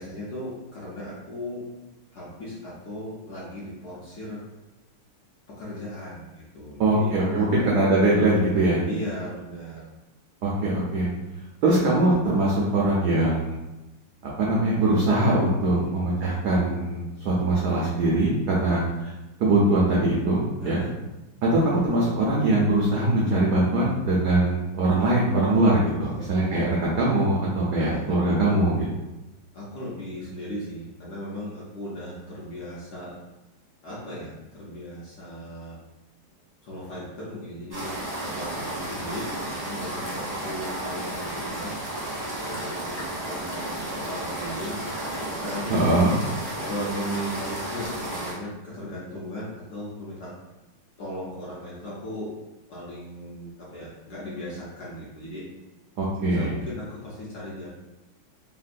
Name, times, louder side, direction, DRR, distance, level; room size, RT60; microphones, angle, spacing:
voice 1, 0.0-1.7 2.1-4.4 5.5-7.7 8.9-9.8 15.7-16.0 18.5-18.8 20.6-20.9 26.0-26.3 27.7-28.0 29.5-33.2 33.8-35.7 36.6-37.9 38.2-41.7 42.4-46.0 46.6-50.3 51.0-52.3 52.7-55.5 56.2-57.7, equal, 65° left, -7 dB, 1.0 m, -37 dB
voice 2, 6.8-8.8 10.4-11.1 11.6-13.6 14.4-19.1 19.4-20.8 21.4-28.8 45.7-46.2 56.0-56.5, right 2 dB, 85° right, -5 dB, 0.8 m, -22 dB
sound 1, 37.7-48.3, right 1 dB, 45° right, 0.5 m, -33 dB
3.4 x 2.2 x 2.5 m, 1.0 s
omnidirectional pair, 2.3 m